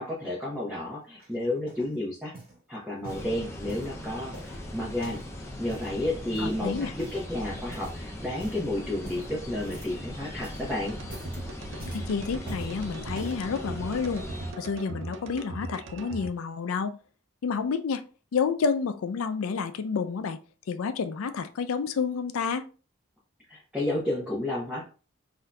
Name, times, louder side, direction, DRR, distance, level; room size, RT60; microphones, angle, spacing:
voice 1, 0.0-2.3 2.7-5.2 5.6-11.0 23.5-24.9, left 1 dB, 5° right, -6 dB, 0.8 m, -31 dB
sound 1, 1.2-1.9 2.3-2.6 3.0-4.0 4.3-5.3 5.6-6.0 6.3-6.6 7.0-7.4 7.7-8.0 8.3-8.6 9.0-10.1 10.3-10.7 11.0-11.4 11.8-12.7 13.1-13.5 14.1-14.2, right 1 dB, 25° right, 1.4 m, -46 dB
sound 2, 3.1-14.5, left 1 dB, 15° left, 0.4 m, -39 dB
voice 2, 6.4-6.9 11.9-14.2 14.6-16.9 17.4-18.0 18.3-20.4 20.7-22.6, left 5 dB, 80° left, 9 dB, 0.4 m, -29 dB
sound 3, 10.9-16.3, right 2 dB, 65° right, 0.4 m, -39 dB
3.6 x 2.6 x 2.2 m, 0.35 s
head